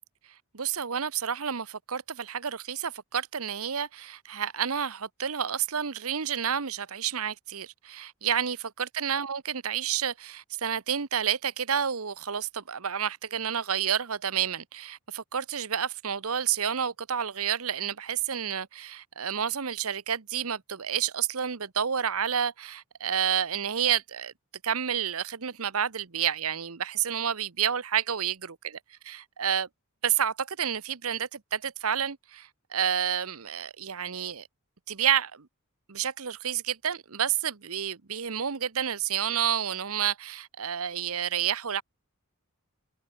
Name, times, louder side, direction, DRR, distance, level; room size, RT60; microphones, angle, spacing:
voice 1, 0.5-24.3 24.6-28.5 29.0-29.7 30.0-34.5 34.9-35.5 35.9-41.8, right 8 dB, 75° right, 1.1 m, -30 dB
head